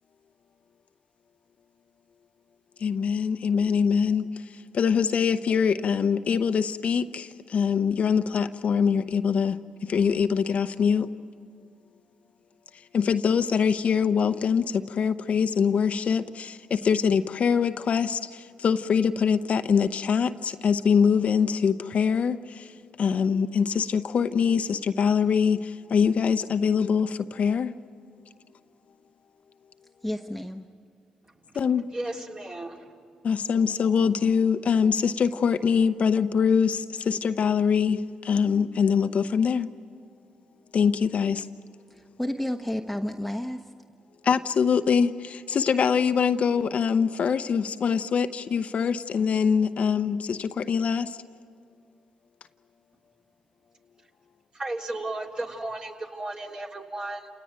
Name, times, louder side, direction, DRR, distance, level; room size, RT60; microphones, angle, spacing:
voice 1, 2.8-11.1 12.7-27.7 31.5-31.9 33.2-39.7 40.7-41.5 44.2-51.2, left 6 dB, 60° left, 9 dB, 0.8 m, -24 dB
voice 2, 30.0-30.6 42.2-43.6, left 1 dB, ahead, 4 dB, 1.1 m, -30 dB
voice 3, 31.9-32.9 54.5-57.3, right 2 dB, 35° right, 0 dB, 3.4 m, -34 dB
29.5 x 18.0 x 9.3 m, 2.2 s
supercardioid pair, 55°, 3 cm